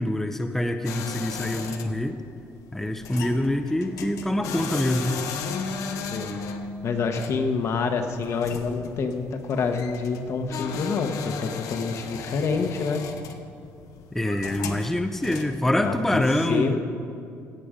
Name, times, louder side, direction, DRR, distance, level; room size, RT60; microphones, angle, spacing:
voice 1, 0.0-2.2 2.7-5.2 14.1-16.8, left 1 dB, 5° left, 6 dB, 0.6 m, -25 dB
sound 1, 0.8-16.1, left 5 dB, 70° left, 0.9 m, -36 dB
voice 2, 6.0-6.4 6.8-13.0 15.7-16.2 16.5-16.8, left 5 dB, 55° left, 5 dB, 1.1 m, -27 dB
16.5 x 6.8 x 5.1 m, 2.4 s
cardioid pair, 95°, 6 cm